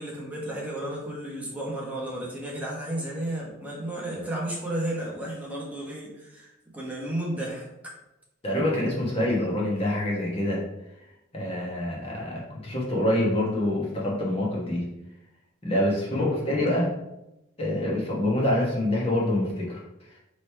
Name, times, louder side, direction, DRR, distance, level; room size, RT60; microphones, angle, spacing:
voice 1, 0.0-7.9, right 1 dB, 10° right, -4 dB, 1.0 m, -33 dB
voice 2, 8.4-10.7 11.3-14.9 15.6-16.9 17.6-20.1, left 1 dB, 30° left, -4 dB, 1.1 m, -26 dB
5.0 x 3.2 x 3.3 m, 0.90 s
head